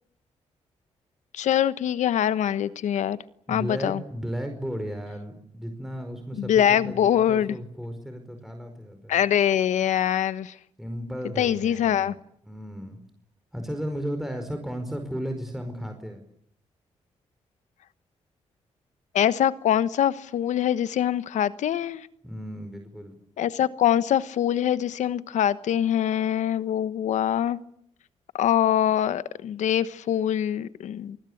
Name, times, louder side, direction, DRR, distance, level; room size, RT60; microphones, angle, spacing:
voice 1, 1.3-3.2 3.5-4.0 6.4-7.6 9.1-10.5 11.4-12.1 19.1-22.1 23.4-27.6 28.3-31.2, left 10 dB, 80° left, 15 dB, 1.1 m, -24 dB
voice 2, 3.5-9.2 10.8-12.1 12.5-13.0 13.5-16.2 22.2-23.1, equal, ahead, 5 dB, 4.9 m, -34 dB
28.5 x 20.5 x 8.6 m, 0.68 s
supercardioid pair, 60°, 12 cm